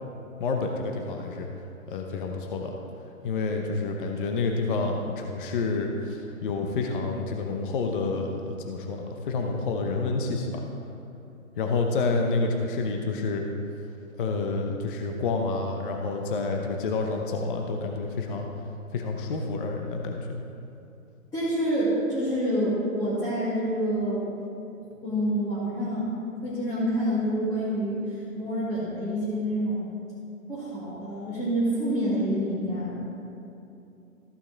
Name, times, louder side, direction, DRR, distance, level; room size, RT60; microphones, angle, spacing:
voice 1, 0.4-1.5 1.9-2.7 3.2-10.6 11.6-13.5 14.2-18.5 18.9-20.4, left 3 dB, 40° left, 2 dB, 0.8 m, -29 dB
voice 2, 21.3-24.2 25.0-26.1 26.4-29.8 30.5-33.0, equal, 10° left, -11 dB, 1.9 m, -27 dB
14.5 x 5.6 x 4.0 m, 2.7 s
hypercardioid pair, 145°, 42 cm